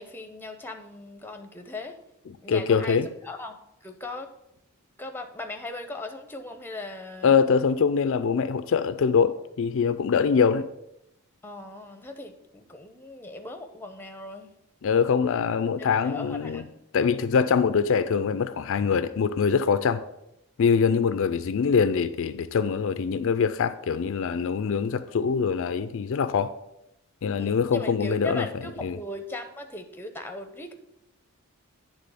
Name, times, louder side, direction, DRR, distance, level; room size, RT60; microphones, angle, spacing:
voice 1, 0.0-2.0 2.4-4.3 5.0-7.4 11.4-14.5 15.8-16.8 27.4-30.7, left 2 dB, 10° left, 0.6 m, -38 dB
voice 2, 2.5-3.1 7.2-10.7 14.8-16.6 16.9-20.0 20.6-26.5 27.2-28.5 28.8-29.0, left 6 dB, 60° left, 0.4 m, -23 dB
9.5 x 3.6 x 6.8 m
head